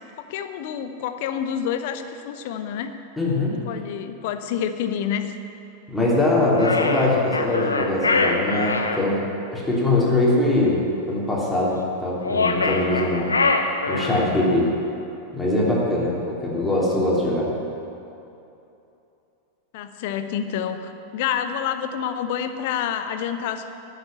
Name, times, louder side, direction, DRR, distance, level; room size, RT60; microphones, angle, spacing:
voice 1, 0.2-3.0 3.6-5.3 19.7-23.7, left 8 dB, 50° left, 9 dB, 0.8 m, -28 dB
voice 2, 3.2-3.6 5.9-9.2 9.5-10.8 11.1-13.3 13.9-14.7 15.3-17.5, left 2 dB, 5° left, -6 dB, 3.2 m, -22 dB
sound 1, 6.6-9.0 12.2-14.3, left 3 dB, 75° left, 0.8 m, -23 dB
11.5 x 6.8 x 8.6 m, 2.8 s
figure-of-eight pair, 90°, 0 cm